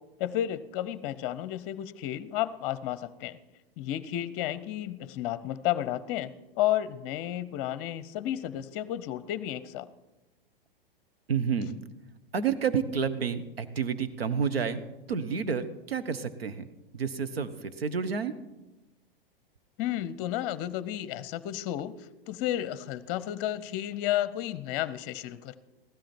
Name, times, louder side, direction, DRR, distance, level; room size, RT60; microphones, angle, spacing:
voice 1, 0.0-3.4 3.8-9.9 19.8-25.6, left 12 dB, 40° left, 16 dB, 0.7 m, -32 dB
voice 2, 11.3-11.8 12.3-14.8 15.1-16.7 16.9-18.3, right 6 dB, 85° right, 11 dB, 1.1 m, -30 dB
15.5 x 13.0 x 4.4 m, 1.0 s
hypercardioid pair, 110°, 29 cm